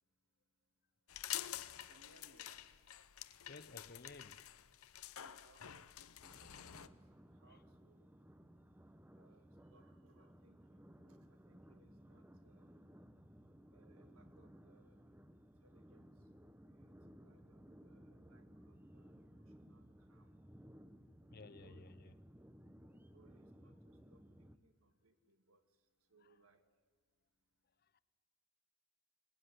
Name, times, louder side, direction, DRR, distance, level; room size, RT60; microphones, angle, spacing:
sound 1, 1.1-6.9, left 12 dB, 85° left, 0.8 m, -48 dB
voice 1, 1.4-2.7 5.2-7.0 7.4-8.1 9.1-12.8 13.7-15.1 15.6-16.1 16.7-16.9 17.2-20.4 21.4-22.2 23.1-25.6 26.1-26.7, right 2 dB, 80° right, 1.9 m, -70 dB
voice 2, 3.5-4.5 7.5-7.6 21.3-22.1 26.2-26.3 27.8-28.0, left 3 dB, 45° left, 0.8 m, -56 dB
sound 2, 6.2-24.6, equal, 10° right, 0.8 m, -60 dB
22.5 x 20.0 x 9.7 m
head